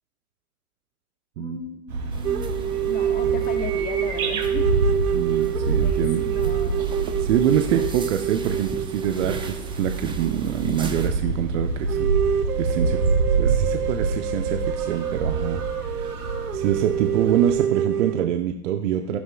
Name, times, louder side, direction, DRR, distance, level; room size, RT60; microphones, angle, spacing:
voice 1, 1.4-4.7 5.3-5.4 5.8-6.9 19.1-19.2, left 5 dB, 20° left, 6 dB, 1.2 m, -37 dB
Japanese bush warbler (uguisu) in a city ambiance, 1.9-17.6, right 4 dB, 70° right, 2.9 m, -27 dB
sound 1, 2.1-11.1, right 4 dB, 10° right, 0.9 m, -38 dB
sound 2, 2.2-10.9 11.2-11.3 11.9-18.3, right 9 dB, 85° right, 0.6 m, -27 dB
voice 2, 5.1-6.3 7.2-12.1 12.6-13.1 13.4-16.0 16.5-19.2, right 10 dB, 55° right, 6 dB, 0.9 m, -25 dB
14.0 x 11.5 x 2.3 m, 0.89 s
hypercardioid pair, 105°, 44 cm